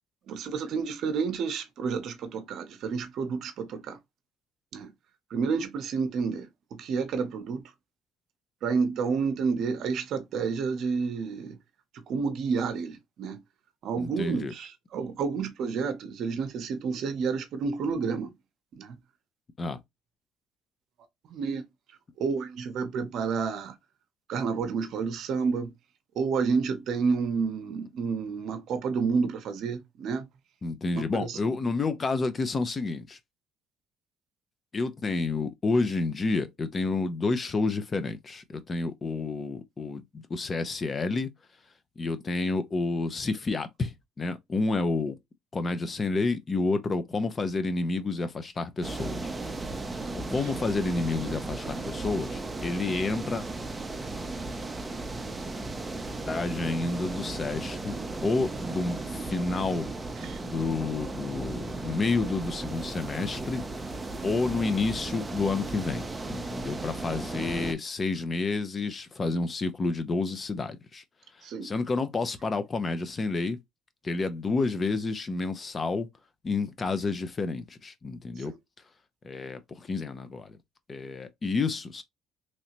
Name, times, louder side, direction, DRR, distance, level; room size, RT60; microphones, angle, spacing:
voice 1, 0.3-4.0 4.7-4.9 5.3-7.6 8.6-11.6 12.1-13.4 13.8-18.3 18.8-19.0 21.3-21.6 22.2-23.7 24.3-25.7 26.2-30.3 31.0-31.4 60.2-60.4 71.4-71.7 78.4-78.6, right 5 dB, 65° right, 0.7 m, -30 dB
voice 2, 14.0-14.5 19.6-19.8 30.6-33.2 34.7-41.3 42.0-45.2 45.5-49.3 50.1-53.4 56.3-58.0 58.2-59.9 60.4-63.6 64.2-71.0 71.6-73.6 74.0-76.1 76.4-78.5 79.2-80.6 80.9-82.0, left 3 dB, 30° left, 0.5 m, -29 dB
sound 1, 48.8-67.7, right 2 dB, 15° right, 0.6 m, -35 dB
3.1 x 2.7 x 2.9 m
cardioid pair, 105°, 0 cm